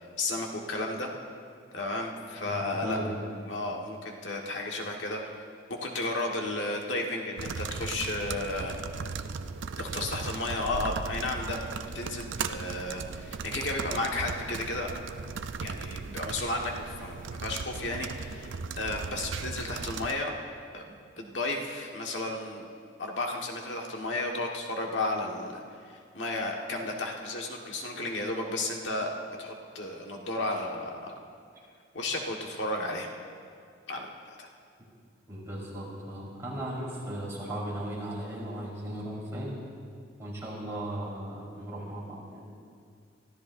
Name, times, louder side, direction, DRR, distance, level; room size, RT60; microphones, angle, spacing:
voice 1, 0.2-1.1 1.7-3.0 3.5-5.2 5.7-8.8 9.8-11.6 11.9-14.9 15.6-20.3 20.7-22.7 23.0-25.6 25.9-29.1 29.4-31.1 31.9-33.1 33.9-34.5, left 2 dB, 80° left, 0 dB, 1.5 m, -33 dB
voice 2, 2.4-3.2 35.3-39.6 40.2-42.5, right 1 dB, 15° right, -6 dB, 4.1 m, -37 dB
sound 1, 7.4-20.1, right 5 dB, 85° right, 0.5 m, -37 dB
24.0 x 14.5 x 2.6 m, 2.3 s
head